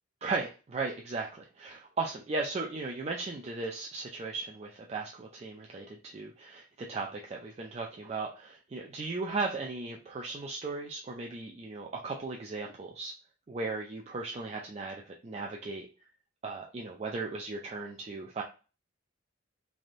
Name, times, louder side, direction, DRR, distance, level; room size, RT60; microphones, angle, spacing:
voice 1, 0.2-13.1 13.5-15.9 16.4-18.4, right 3 dB, 30° right, 0 dB, 0.3 m, -36 dB
3.3 x 2.5 x 2.5 m, 0.34 s
head